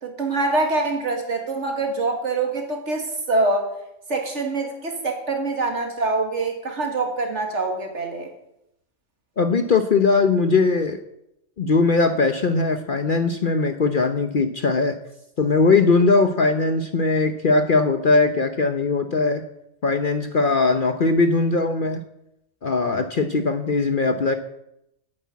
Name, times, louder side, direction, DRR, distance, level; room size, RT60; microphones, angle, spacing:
voice 1, 0.0-3.7 4.1-8.3, right 3 dB, 65° right, 3 dB, 2.3 m, -25 dB
voice 2, 9.4-11.0 11.6-15.0 15.4-19.4 19.8-22.0 22.6-24.3, left 3 dB, 45° left, 7 dB, 0.9 m, -20 dB
9.9 x 8.8 x 8.4 m, 0.82 s
omnidirectional pair, 1.3 m